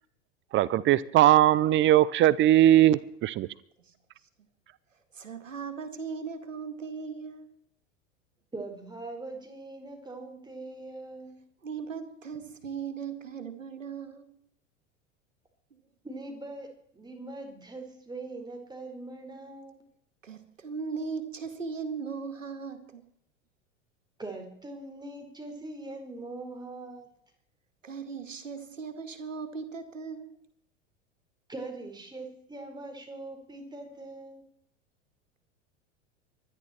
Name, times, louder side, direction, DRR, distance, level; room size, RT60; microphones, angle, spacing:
voice 1, 0.5-3.5, right 13 dB, 30° right, 0.6 m, -20 dB
voice 2, 5.1-7.5 11.6-14.4 15.7-15.8 20.2-23.1 27.8-30.4, right 5 dB, 85° right, 2.2 m, -38 dB
voice 3, 8.5-11.5 16.0-19.9 24.2-27.1 31.5-34.4, right 2 dB, 10° right, 4.6 m, -42 dB
24.0 x 11.0 x 4.4 m
figure-of-eight pair, 85°, 37 cm